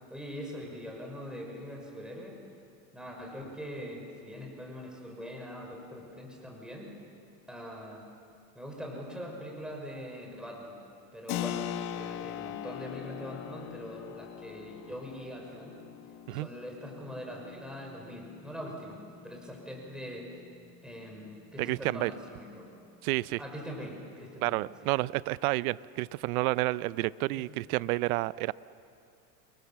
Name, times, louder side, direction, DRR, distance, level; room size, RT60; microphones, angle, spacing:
voice 1, 0.1-2.4 2.9-6.9 7.5-8.1 8.5-10.8 11.1-11.6 11.9-15.8 16.3-20.3 20.8-22.8 23.4-24.9, equal, ahead, 0 dB, 5.7 m, -42 dB
Keyboard (musical), 11.3-21.7, left 10 dB, 55° left, 1.7 m, -42 dB
voice 2, 21.6-22.1 23.0-23.4 24.4-28.5, right 20 dB, 70° right, 19 dB, 0.7 m, -30 dB
29.0 x 21.5 x 7.4 m, 2.5 s
supercardioid pair, 115°, 45 cm